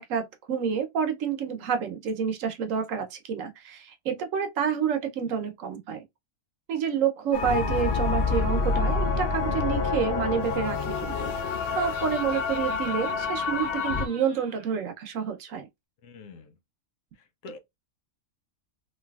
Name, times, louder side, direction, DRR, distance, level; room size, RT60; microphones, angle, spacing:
voice 1, 0.0-6.0 6.7-11.3 11.7-15.7, right 7 dB, 70° right, 1.0 m, -29 dB
sound 1, 7.3-14.1, left 4 dB, 65° left, 0.6 m, -27 dB
Laughter, 11.2-14.7, right 3 dB, 35° right, 0.9 m, -49 dB
voice 2, 16.0-16.6 17.1-17.6, left 3 dB, 80° left, 1.1 m, -45 dB
3.2 x 2.6 x 2.2 m
omnidirectional pair, 1.4 m